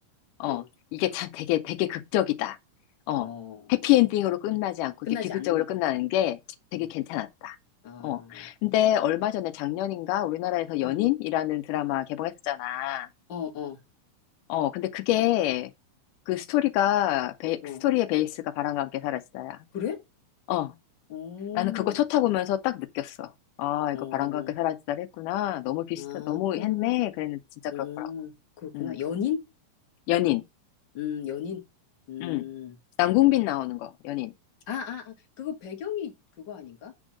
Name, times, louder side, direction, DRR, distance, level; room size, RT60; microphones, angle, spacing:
voice 1, 0.9-2.6 3.1-3.3 3.7-6.4 6.7-7.6 8.0-13.1 14.5-15.7 16.3-19.6 20.5-20.7 21.6-23.3 23.6-28.1 28.7-29.0 30.1-30.4 32.2-32.5 33.0-34.3, left 14 dB, 90° left, 2.3 m, -27 dB
voice 2, 3.2-3.7 5.1-5.6 6.7-6.9 7.8-8.5 10.8-11.1 13.3-13.8 17.6-17.8 19.7-20.0 21.1-22.0 23.9-24.5 26.0-26.9 27.7-29.4 30.9-31.6 32.1-32.8 34.7-36.9, left 9 dB, 40° left, 2.1 m, -35 dB
8.9 x 3.8 x 6.0 m
omnidirectional pair, 3.6 m